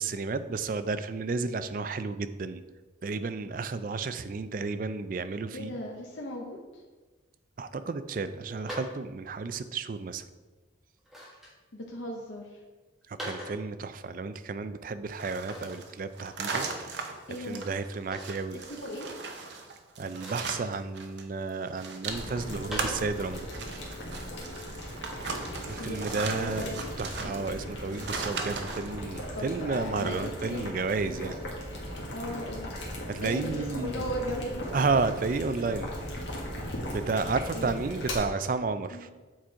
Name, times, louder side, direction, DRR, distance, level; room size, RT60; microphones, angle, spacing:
voice 1, 0.0-2.6 3.0-5.7 7.6-10.2 13.1-18.6 20.0-23.5 25.6-26.7 27.0-31.4 33.1-34.0 34.7-35.9 36.9-39.1, right 4 dB, 45° right, 11 dB, 0.4 m, -32 dB
voice 2, 5.5-6.8 11.7-12.6 17.3-17.7 18.5-19.1 25.8-26.8 29.3-30.7 32.1-32.7 33.1-34.6 37.5-37.8 38.9-39.1, equal, 85° left, -1 dB, 0.9 m, -37 dB
sound 1, 8.6-9.0 11.0-11.5 13.0-13.6 15.4-15.8 16.2-16.3 16.7-16.8 18.1-18.4 20.1-20.5 22.7-23.1, equal, ahead, 1.4 m, -40 dB
sound 2, 15.1-21.2 21.5-28.9, right 4 dB, 65° right, 0.8 m, -38 dB
Boiling, 22.1-38.1, equal, 70° left, 1.6 m, -38 dB
7.5 x 4.4 x 4.7 m, 1.3 s
head